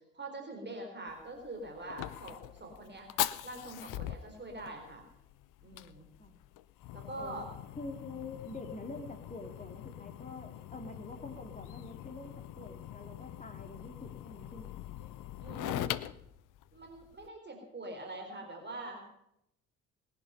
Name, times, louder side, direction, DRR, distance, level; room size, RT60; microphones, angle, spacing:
voice 1, 0.1-3.1 3.4-5.0 5.6-6.0 6.9-7.5 15.0-15.9 16.7-19.0, right 2 dB, 25° right, 3 dB, 4.0 m, -44 dB
Fire, 1.1-17.3, left 14 dB, 50° left, 0.7 m, -42 dB
voice 2, 7.8-15.0, left 2 dB, 20° left, 5 dB, 2.8 m, -46 dB
20.0 x 11.0 x 5.6 m, 0.80 s
figure-of-eight pair, 55°, 42 cm